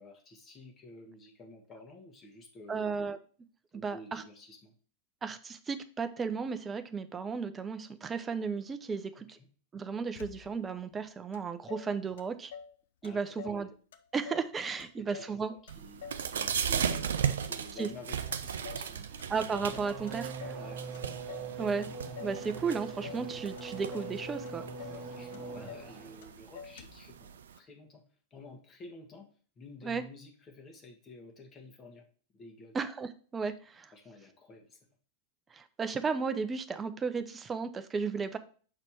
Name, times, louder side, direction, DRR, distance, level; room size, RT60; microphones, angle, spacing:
voice 1, 0.0-3.0 3.7-4.7 9.1-9.5 13.0-13.7 15.0-19.1 20.5-21.1 22.4-22.5 24.9-28.0 28.3-29.3 29.5-32.1 32.3-32.8 33.9-34.9, left 2 dB, 25° left, 3 dB, 1.6 m, -51 dB
voice 2, 2.7-3.2 3.8-4.2 5.2-9.4 9.7-12.5 13.0-13.7 14.1-15.5 17.8-17.9 19.3-20.3 21.6-21.9 22.2-24.6 29.8-30.0 32.7-33.9 35.5-38.4, right 5 dB, 20° right, 10 dB, 0.6 m, -34 dB
Motor vehicle (road), 10.1-10.8 11.3-11.4 11.7-12.8 13.0-13.6 13.9-14.5 14.8-16.3 16.5-17.1 17.4-18.0 18.3-18.9 19.2-19.8 20.1-20.7 20.9-21.5 21.8-22.4 22.7-23.3 23.6-24.2 24.5-24.6 24.8-25.0 25.3-25.9 26.2-26.3 26.5-27.1, left 7 dB, 60° left, 0.6 m, -47 dB
sound 1, 15.7-27.6, right 8 dB, 65° right, 0.5 m, -37 dB
Race car auto racing / Accelerating revving vroom, 19.0-26.3, right 4 dB, 45° right, 1.0 m, -42 dB
6.5 x 4.2 x 4.6 m, 0.41 s
figure-of-eight pair, 90°, 0 cm